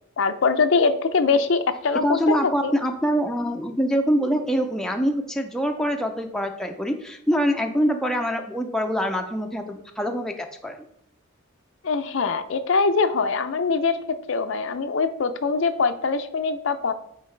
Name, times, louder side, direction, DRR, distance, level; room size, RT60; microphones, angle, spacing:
voice 1, 0.2-2.7 11.8-14.0 14.3-16.9, left 4 dB, 60° left, 9 dB, 0.5 m, -23 dB
voice 2, 2.0-10.8, equal, 5° left, 3 dB, 0.5 m, -24 dB
9.1 x 4.0 x 3.3 m, 0.77 s
head